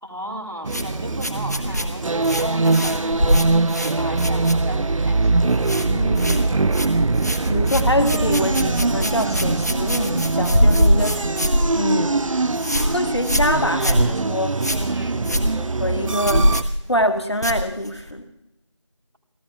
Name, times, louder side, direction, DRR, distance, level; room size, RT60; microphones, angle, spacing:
voice 1, 0.0-5.4 14.9-15.3, equal, 45° right, 0 dB, 2.2 m, -35 dB
sound 1, 0.6-16.6, right 3 dB, 90° right, 0.4 m, -22 dB
sound 2, 0.7-5.0 5.3-5.9 6.1-18.1, equal, 35° left, 1.2 m, -23 dB
voice 2, 5.8-6.5 7.5-11.4 11.7-12.2 12.8-14.6 15.6-16.6 16.9-18.2, left 1 dB, 55° left, 9 dB, 1.4 m, -25 dB
30.0 x 13.5 x 2.3 m, 0.92 s
figure-of-eight pair, 175°, 16 cm